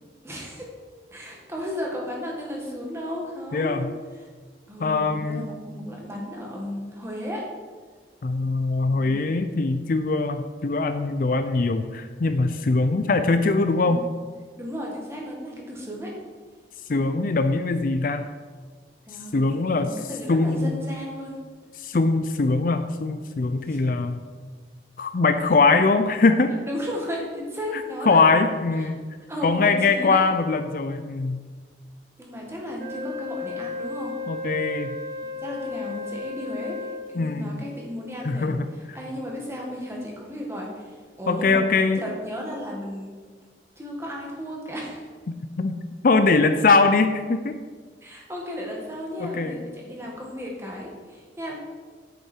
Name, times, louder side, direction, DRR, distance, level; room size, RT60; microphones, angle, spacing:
voice 1, 0.2-0.7 1.1-3.9 4.2-4.3 4.7-7.5 13.7-14.1 14.6-16.1 19.1-21.4 23.6-23.8 26.6-28.2 28.8-28.9 29.3-30.3 32.2-34.2 35.4-41.7 42.0-43.1 43.8-45.1 48.0-51.6, equal, 15° right, -2 dB, 1.7 m, -34 dB
voice 2, 3.5-3.9 4.8-5.5 8.2-14.0 16.9-18.3 19.3-19.9 20.3-20.8 21.8-24.2 25.0-26.5 27.7-29.0 29.4-31.4 34.3-34.9 37.2-37.6 38.2-38.7 41.3-42.0 45.6-45.8 46.0-47.6 49.2-49.6, left 3 dB, 50° left, 8 dB, 0.4 m, -22 dB
Wind instrument woodwind instrument, 32.8-37.2, left 3 dB, 60° right, 1.7 m, -34 dB
8.1 x 7.6 x 4.5 m, 1.5 s
head